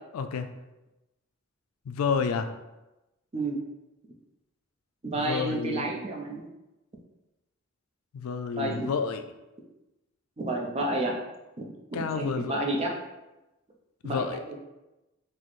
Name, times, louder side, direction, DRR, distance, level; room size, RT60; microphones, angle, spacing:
voice 1, 0.1-0.5 1.9-2.5 5.1-5.8 8.1-9.2 11.9-12.6 14.0-14.4, left 5 dB, 85° left, 7 dB, 0.3 m, -30 dB
voice 2, 5.0-6.5 8.6-8.9 10.4-11.2 11.6-12.9 14.0-14.6, right 2 dB, 30° right, 0 dB, 0.4 m, -30 dB
4.0 x 2.0 x 3.1 m, 1.0 s
head